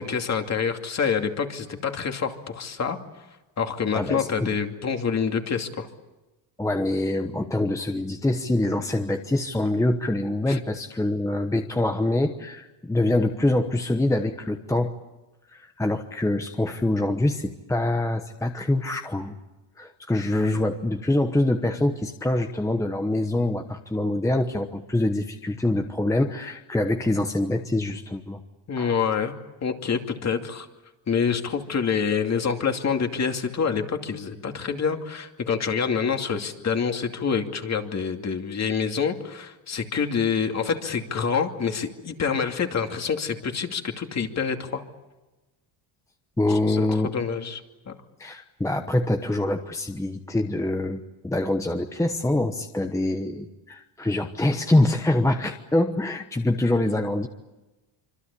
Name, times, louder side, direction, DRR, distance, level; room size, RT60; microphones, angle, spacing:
voice 1, 0.0-3.0 3.6-5.9 10.5-10.6 28.7-29.3 29.6-30.7 31.1-44.8 46.5-47.6 47.9-48.0, left 6 dB, 35° left, 5 dB, 2.6 m, -27 dB
voice 2, 3.9-4.6 6.6-14.9 15.5-19.4 19.8-28.4 28.8-28.9 46.4-47.1 48.2-57.3, left 1 dB, 5° left, 5 dB, 1.1 m, -25 dB
26.0 x 25.5 x 8.5 m, 1.1 s
cardioid pair, 145°, 48 cm